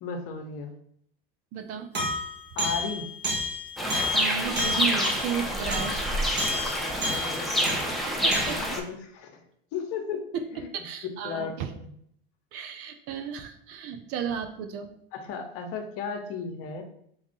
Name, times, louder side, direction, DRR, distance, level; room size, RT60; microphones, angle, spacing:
voice 1, 0.0-0.7 2.5-3.1 6.8-7.8 8.5-10.2 10.5-10.7 11.2-11.9 15.1-16.8, left 5 dB, 50° left, 5 dB, 0.8 m, -35 dB
voice 2, 1.5-1.9 4.1-6.3 7.1-7.3 8.1-8.6 10.3-10.4 10.7-11.7 12.5-14.9, right 7 dB, 50° right, 7 dB, 0.6 m, -34 dB
sound 1, 1.9-7.9 8.3-8.5, left 1 dB, 35° right, 1.2 m, -31 dB
sound 2, 3.8-8.8, equal, ahead, 0.7 m, -28 dB
3.5 x 2.3 x 4.2 m, 0.69 s
hypercardioid pair, 90°, 29 cm